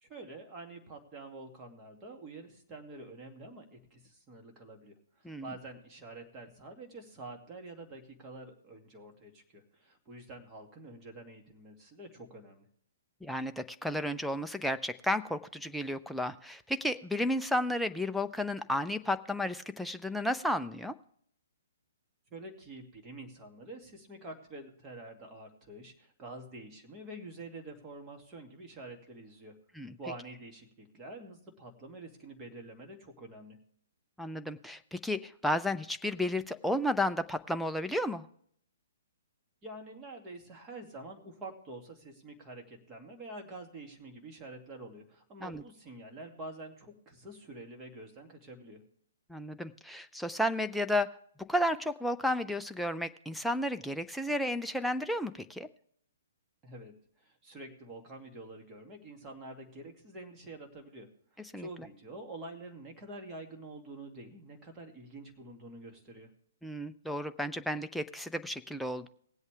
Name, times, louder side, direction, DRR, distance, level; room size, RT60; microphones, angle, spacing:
voice 1, 0.0-12.7 22.3-29.5 29.8-33.6 39.6-48.8 56.6-61.1 61.3-66.3, right 2 dB, 20° right, 2 dB, 2.4 m, -47 dB
voice 2, 13.2-20.9 29.8-30.0 34.2-38.3 45.4-45.6 49.3-51.1 51.5-55.7 61.5-61.7 66.6-69.1, left 1 dB, ahead, 7 dB, 0.6 m, -32 dB
19.5 x 8.2 x 3.4 m, 0.63 s
figure-of-eight pair, 125°, 0 cm